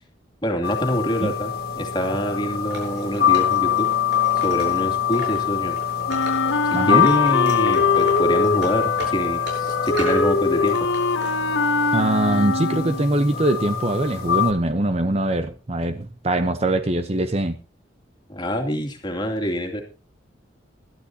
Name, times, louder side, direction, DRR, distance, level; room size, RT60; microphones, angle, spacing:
voice 1, 0.4-3.9 4.4-5.8 6.7-10.9 18.3-19.8, equal, 25° left, 2.5 m, -25 dB
sound 1, 0.6-14.5, left 9 dB, 55° left, 1.5 m, -24 dB
Wood, 2.7-5.4 5.7-6.7 7.0-10.3 10.6-11.3, right 1 dB, 65° right, 6.9 m, -37 dB
Wind instrument woodwind instrument, 6.1-13.1, left 3 dB, 70° left, 1.6 m, -24 dB
voice 2, 6.7-7.1 11.9-17.6, right 1 dB, 35° right, 0.8 m, -22 dB
20.5 x 12.5 x 2.8 m
head